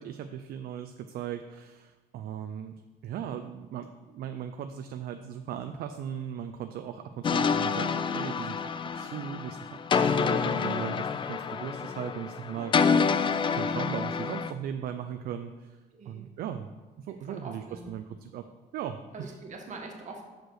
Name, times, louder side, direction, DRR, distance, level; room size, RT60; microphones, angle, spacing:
voice 1, 0.0-2.7 3.0-15.8 16.1-16.7 17.0-18.4 18.7-19.4, right 9 dB, 65° right, 8 dB, 0.4 m, -38 dB
sound 1, 7.2-14.5, left 6 dB, 30° left, 0.4 m, -28 dB
voice 2, 15.9-16.3 17.1-17.9 19.1-20.2, right 3 dB, 45° right, 2 dB, 1.5 m, -44 dB
5.9 x 5.2 x 6.4 m, 1.2 s
cardioid pair, 110°, 17 cm